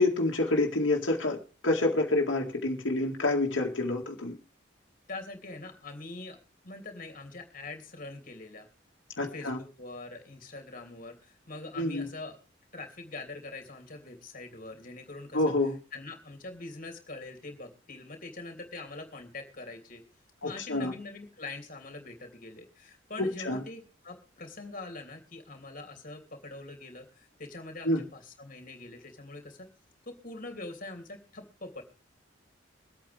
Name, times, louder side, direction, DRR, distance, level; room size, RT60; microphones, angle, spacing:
voice 1, 0.0-1.4 1.6-4.4 9.2-9.6 11.8-12.1 15.3-15.8 20.4-20.9 23.2-23.6 27.8-28.0, left 2 dB, 85° left, 0 dB, 2.1 m, -27 dB
voice 2, 5.1-6.4 6.6-8.7 9.3-12.4 12.7-15.5 15.9-20.0 20.4-29.7 30.0-31.8, left 2 dB, 45° left, 4 dB, 3.1 m, -43 dB
23.5 x 8.8 x 3.5 m, 0.33 s
head